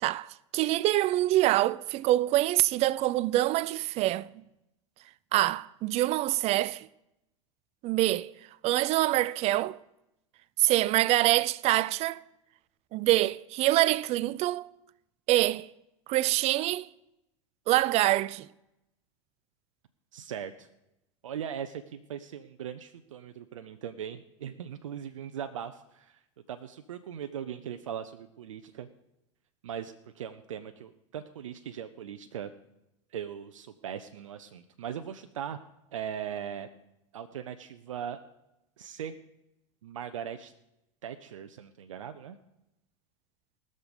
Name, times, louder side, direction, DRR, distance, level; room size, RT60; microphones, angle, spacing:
voice 1, 0.0-4.3 5.3-6.9 7.8-8.3 8.6-9.8 10.6-12.2 12.9-14.7 15.3-15.7 16.1-16.9 17.7-18.5, right 16 dB, 40° right, 0.4 m, -25 dB
voice 2, 20.1-20.7 21.2-26.2 26.5-28.9 29.6-32.5 33.1-35.6 35.9-36.7 37.1-38.2 38.8-39.1 39.8-40.5 41.0-42.4, right 9 dB, 80° right, 0.7 m, -39 dB
19.5 x 6.6 x 5.3 m
hypercardioid pair, 95°, 16 cm